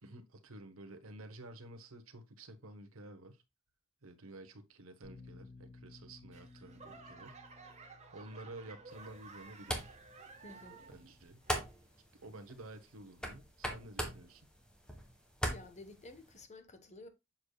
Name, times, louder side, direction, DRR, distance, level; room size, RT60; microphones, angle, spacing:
voice 1, 0.0-3.4 4.0-7.4 8.1-10.0 10.9-11.4 12.1-14.5, right 2 dB, 75° right, 1.1 m, -51 dB
Bass guitar, 5.0-11.3, left 3 dB, 60° left, 3.2 m, -58 dB
Laughter / Clapping / Crowd, 6.3-11.1 11.4-11.9 12.5-12.6, right 4 dB, 35° right, 1.4 m, -54 dB
sound 1, 8.9-16.4, equal, 5° left, 1.5 m, -43 dB
voice 2, 10.4-10.9 15.4-17.1, left 2 dB, 35° left, 1.3 m, -52 dB
7.2 x 6.5 x 2.3 m
head